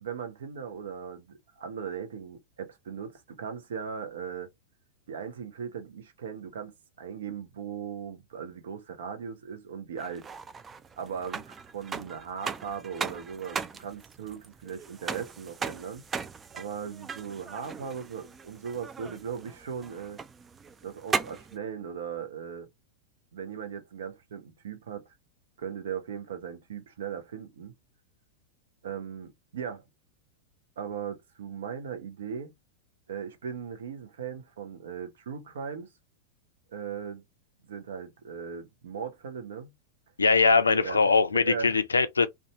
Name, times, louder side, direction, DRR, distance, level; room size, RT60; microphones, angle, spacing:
voice 1, 0.0-4.5 5.1-10.3 11.0-16.1 16.5-20.2 20.8-22.7 23.3-25.1 25.6-27.7 28.8-29.8 30.8-32.5 33.1-35.9 36.7-37.2 37.7-39.7 40.7-41.8, right 7 dB, 60° right, 0.7 m, -38 dB
sound 1, 10.0-21.6, right 5 dB, 20° right, 0.3 m, -38 dB
voice 2, 40.2-42.3, left 4 dB, 75° left, 0.4 m, -22 dB
2.6 x 2.2 x 2.9 m
figure-of-eight pair, 90°, 0 cm